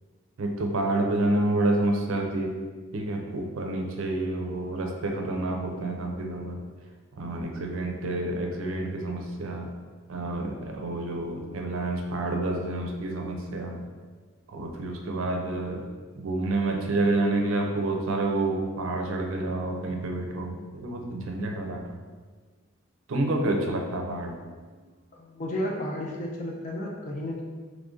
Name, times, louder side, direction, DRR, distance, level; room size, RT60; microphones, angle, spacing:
voice 1, 0.4-2.6 2.9-6.6 7.2-9.7 10.1-13.8 14.5-15.8 16.1-21.9 23.1-24.4, right 2 dB, 75° right, 2 dB, 0.5 m, -28 dB
voice 2, 25.1-27.4, left 1 dB, 35° left, -1 dB, 0.4 m, -33 dB
3.1 x 2.5 x 3.7 m, 1.5 s
head